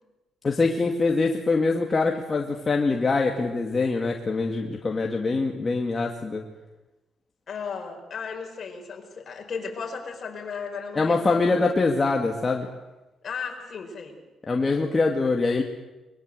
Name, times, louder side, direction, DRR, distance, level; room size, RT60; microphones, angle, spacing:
voice 1, 0.4-6.4 11.0-12.7 14.5-15.6, left 3 dB, 30° left, 1 dB, 2.3 m, -24 dB
voice 2, 7.5-11.7 13.2-14.2, left 5 dB, 50° left, 4 dB, 5.1 m, -35 dB
23.0 x 22.0 x 8.0 m, 1.1 s
cardioid pair, 90°, 0 cm